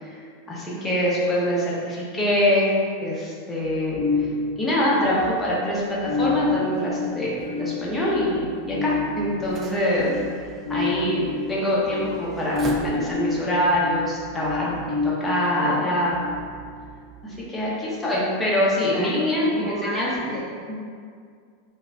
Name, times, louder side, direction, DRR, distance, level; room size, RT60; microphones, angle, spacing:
voice 1, 0.0-2.8 3.0-4.3 4.6-10.2 10.7-16.2 17.2-20.1, left 1 dB, 15° left, -6 dB, 0.7 m, -24 dB
sound 1, 3.6-17.4 20.2-20.4, left 3 dB, 90° left, 0.7 m, -30 dB
sound 2, 5.8-13.5, right 3 dB, 30° right, 0.3 m, -42 dB
voice 2, 15.6-16.0 17.6-18.0 18.9-20.5, equal, 10° right, -8 dB, 0.9 m, -32 dB
2.4 x 2.2 x 3.1 m, 2.1 s
hypercardioid pair, 100°, 0 cm